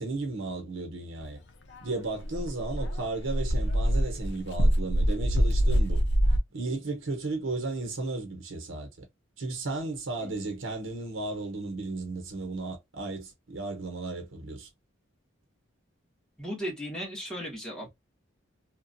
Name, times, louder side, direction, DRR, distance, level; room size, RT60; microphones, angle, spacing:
voice 1, 0.0-1.4 1.8-6.0 6.5-9.0 9.4-14.7, right 2 dB, 80° right, 1.0 m, -34 dB
Dog, 1.8-1.9 2.2-6.4, equal, 60° left, 0.7 m, -25 dB
voice 2, 16.4-17.9, equal, 5° left, 1.5 m, -36 dB
2.9 x 2.4 x 2.6 m
head